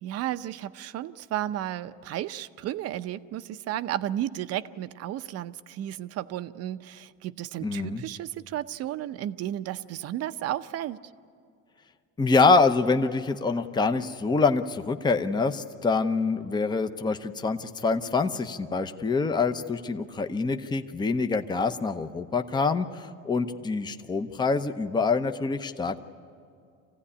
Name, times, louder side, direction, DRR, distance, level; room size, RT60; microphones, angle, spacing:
voice 1, 0.0-11.0, right 12 dB, 50° right, 13 dB, 0.7 m, -33 dB
voice 2, 7.6-8.0 12.2-26.0, left 4 dB, 15° left, 8 dB, 0.8 m, -25 dB
25.5 x 16.0 x 9.9 m, 2.4 s
cardioid pair, 120°, 32 cm